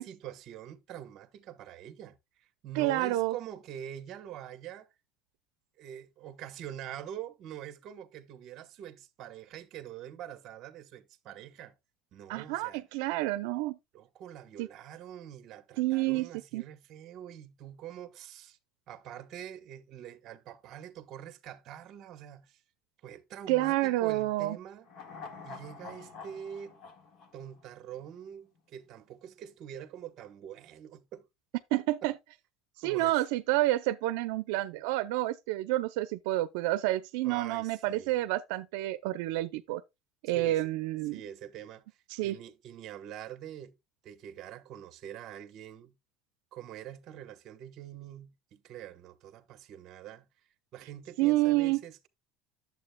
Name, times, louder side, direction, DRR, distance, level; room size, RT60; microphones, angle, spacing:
voice 1, 0.0-4.9 5.8-11.7 12.1-12.8 13.9-18.6 18.9-22.6 23.0-24.9 25.4-26.8 27.3-31.3 32.8-33.2 37.2-38.2 40.3-40.7 41.1-43.7 44.0-45.9 46.5-50.3 50.7-52.1, right 10 dB, 45° right, 1.0 m, -45 dB
voice 2, 2.8-3.3 12.3-13.8 14.6-14.7 15.8-16.6 23.5-24.6 31.7-32.1 32.8-39.8 40.2-41.2 42.1-42.4 51.2-51.8, right 17 dB, 85° right, 0.5 m, -29 dB
sound 1, 24.9-28.3 28.6-28.7, left 4 dB, 45° left, 1.6 m, -47 dB
11.0 x 7.4 x 2.2 m
cardioid pair, 155°, 0 cm